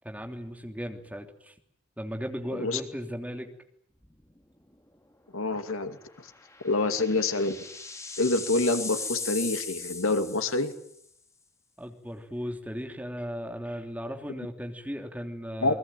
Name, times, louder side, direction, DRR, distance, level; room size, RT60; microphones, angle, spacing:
voice 1, 0.0-1.5 2.0-3.5 11.8-15.8, equal, 5° right, 4 dB, 3.2 m, -36 dB
sound 1, 4.0-4.4 4.7-4.8 6.2-10.9, left 4 dB, 15° left, 2.6 m, -38 dB
voice 2, 5.3-6.3 6.6-7.6 8.2-10.7 15.6-15.7, left 2 dB, 80° left, 8 dB, 2.5 m, -27 dB
29.5 x 21.5 x 9.1 m, 0.72 s
head